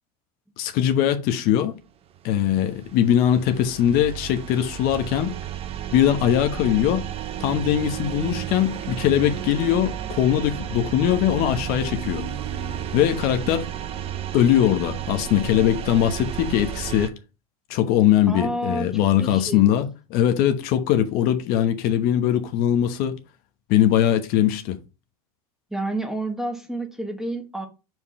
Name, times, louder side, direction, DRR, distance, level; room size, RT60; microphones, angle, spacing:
voice 1, 0.6-1.7 2.2-5.3 5.9-7.1 7.4-12.2 12.9-13.7 14.3-17.1 17.7-23.2 23.7-24.8, left 11 dB, 50° left, 1.1 m, -21 dB
sound 1, 2.2-17.1, right 10 dB, 30° right, 0.8 m, -32 dB
voice 2, 18.3-18.9 19.2-19.7 25.7-27.7, right 1 dB, ahead, 1.2 m, -29 dB
5.5 x 4.7 x 4.2 m
hypercardioid pair, 110°, 19 cm